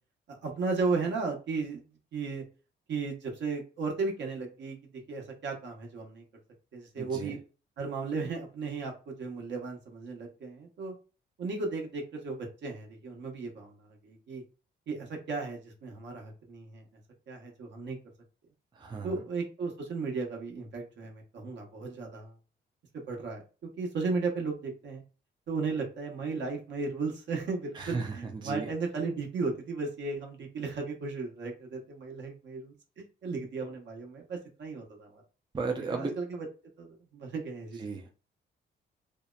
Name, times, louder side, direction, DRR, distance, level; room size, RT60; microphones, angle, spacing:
voice 1, 0.4-1.8 2.1-2.4 2.9-4.8 5.1-6.2 6.7-7.4 7.8-10.9 11.4-14.4 14.9-16.8 17.3-18.0 19.0-22.3 23.1-25.0 25.5-32.7 33.2-35.2 35.9-36.5 36.8-36.9 37.1-37.8, right 4 dB, 65° right, 1 dB, 0.9 m, -35 dB
voice 2, 7.0-7.4 18.8-19.2 27.7-28.7 35.5-36.1 37.8-38.1, right 4 dB, 25° right, 3 dB, 0.4 m, -35 dB
2.7 x 2.0 x 2.3 m, 0.34 s
cardioid pair, 90°, 20 cm